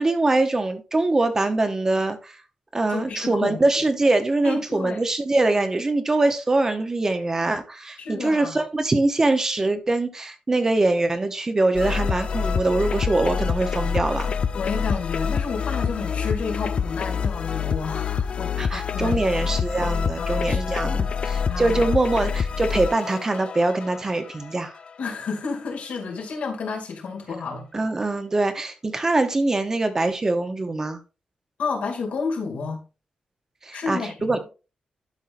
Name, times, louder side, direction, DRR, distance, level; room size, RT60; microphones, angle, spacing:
voice 1, 0.0-2.4 2.7-14.3 18.6-24.7 27.7-31.0 33.6-34.4, right 2 dB, 20° right, 0.8 m, -23 dB
voice 2, 2.9-3.8 4.4-5.0 8.0-8.6 14.5-19.2 20.2-21.2 21.4-21.9 25.0-27.7 31.6-32.8 33.7-34.4, left 4 dB, 80° left, 2.3 m, -31 dB
sound 1, 11.8-24.9, left 6 dB, 45° left, 0.4 m, -26 dB
11.5 x 5.5 x 2.5 m
wide cardioid pair, 180°, 2 cm